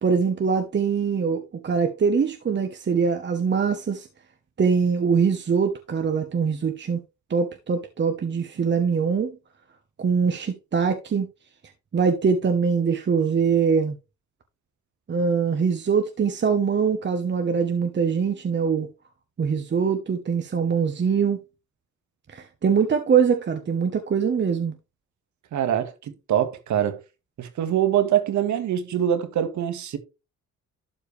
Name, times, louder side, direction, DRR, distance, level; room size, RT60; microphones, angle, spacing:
voice 1, 0.0-4.1 4.6-7.0 7.3-9.4 10.0-11.3 11.9-13.9 15.1-18.9 19.4-21.4 22.3-24.7, right 6 dB, 35° right, 1.1 m, -23 dB
voice 2, 25.5-25.9 26.3-27.0 27.4-30.0, right 10 dB, 70° right, 1.6 m, -23 dB
12.0 x 4.5 x 3.3 m
cardioid pair, 90°, 30 cm